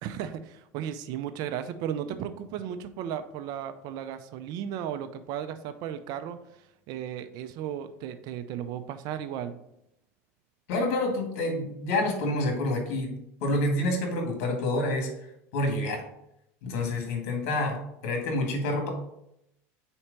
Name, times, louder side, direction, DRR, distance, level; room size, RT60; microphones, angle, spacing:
voice 1, 0.0-6.4 6.9-9.5, right 9 dB, 60° right, 11 dB, 0.6 m, -35 dB
voice 2, 10.7-15.1 15.5-16.0 16.6-18.9, left 1 dB, 70° left, 2 dB, 1.8 m, -28 dB
4.5 x 4.3 x 5.2 m, 0.81 s
supercardioid pair, 115°, 8 cm